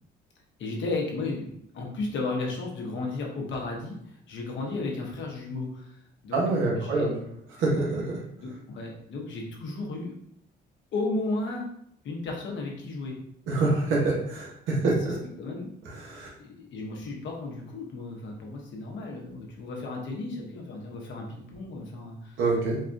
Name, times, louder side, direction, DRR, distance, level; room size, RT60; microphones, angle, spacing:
voice 1, 0.6-6.4 6.8-7.1 8.4-10.1 10.9-11.7 12.0-13.2 15.0-15.1 15.4-15.7 16.4-22.4, left 3 dB, 70° left, 0 dB, 1.0 m, -34 dB
voice 2, 6.3-7.1 7.6-8.2 13.5-15.2 15.9-16.3 22.4-22.8, right 3 dB, 85° right, -4 dB, 1.0 m, -26 dB
4.1 x 2.2 x 2.6 m, 0.70 s
cardioid pair, 90°, 20 cm